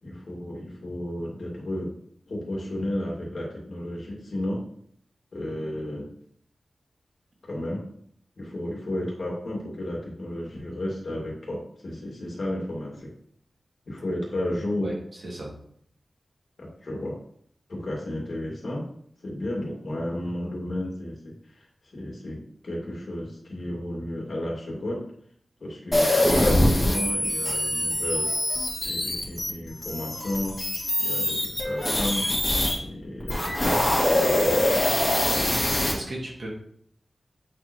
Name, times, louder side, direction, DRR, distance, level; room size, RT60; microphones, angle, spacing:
voice 1, 0.0-1.9 2.3-4.6 5.3-6.1 7.4-7.8 8.4-13.1 13.9-14.9 16.6-17.2 17.7-18.8 19.2-21.7 21.9-25.0 25.6-28.3 28.8-30.6 31.0-32.3 32.8-34.8, left 1 dB, 65° left, -2 dB, 2.0 m, -33 dB
voice 2, 14.8-15.5 35.9-36.5, right 1 dB, 55° right, -2 dB, 1.8 m, -36 dB
sound 1, 25.9-32.7 33.2-35.9, left 1 dB, 30° left, 2.1 m, -24 dB
7.7 x 4.2 x 3.0 m, 0.64 s
wide cardioid pair, 100°, 0 cm